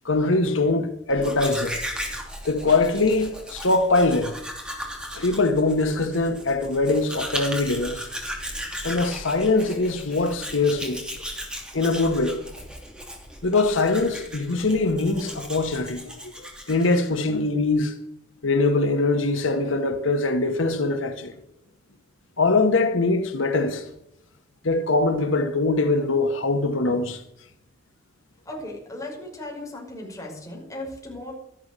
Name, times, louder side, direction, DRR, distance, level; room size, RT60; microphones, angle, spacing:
voice 1, 0.0-1.8 2.4-4.3 5.2-8.0 8.8-11.0 11.7-12.4 13.4-16.1 16.7-17.9 18.4-21.3 22.4-23.8 24.6-27.2, left 3 dB, 90° left, 1.4 m, -22 dB
Domestic sounds home sounds, 1.1-17.2, equal, 5° right, 3.0 m, -36 dB
voice 2, 28.4-31.3, left 1 dB, 15° left, 5.9 m, -36 dB
13.0 x 12.0 x 6.8 m
head